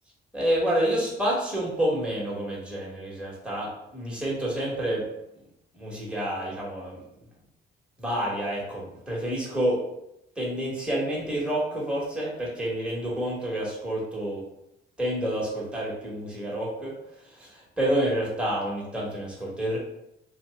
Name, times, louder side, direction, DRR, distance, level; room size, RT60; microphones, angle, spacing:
voice 1, 0.3-5.1 5.7-7.0 8.0-9.8 10.4-14.4 15.0-16.9 17.2-19.8, right 1 dB, 5° right, -5 dB, 1.2 m, -28 dB
2.7 x 2.1 x 3.5 m, 0.81 s
cardioid pair, 90°, 20 cm